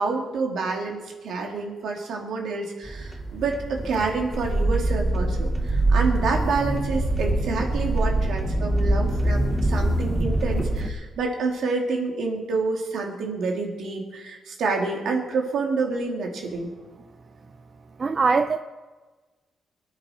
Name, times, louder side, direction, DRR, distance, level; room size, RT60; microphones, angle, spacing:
voice 1, 0.0-16.7, right 4 dB, 75° right, 1 dB, 2.9 m, -28 dB
sound 1, 2.9-10.9, right 1 dB, 5° right, 1.2 m, -24 dB
voice 2, 18.0-18.6, right 4 dB, 35° right, 10 dB, 0.5 m, -21 dB
23.0 x 9.0 x 4.5 m, 1.3 s
cardioid pair, 105°, 0 cm